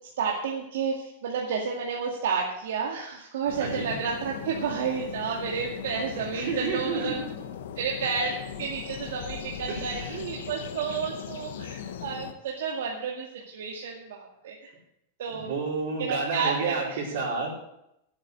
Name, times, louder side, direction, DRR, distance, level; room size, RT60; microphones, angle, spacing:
voice 1, 0.2-7.2 7.8-14.7 15.2-15.5 16.0-17.0, right 5 dB, 80° right, -1 dB, 2.2 m, -31 dB
sound 1, 3.5-12.3, left 8 dB, 80° left, 1.5 m, -39 dB
voice 2, 3.6-3.9 6.2-7.2 9.7-10.2 15.3-17.7, right 4 dB, 60° right, -4 dB, 4.5 m, -31 dB
11.5 x 8.9 x 7.9 m, 0.81 s
supercardioid pair, 165°, 0 cm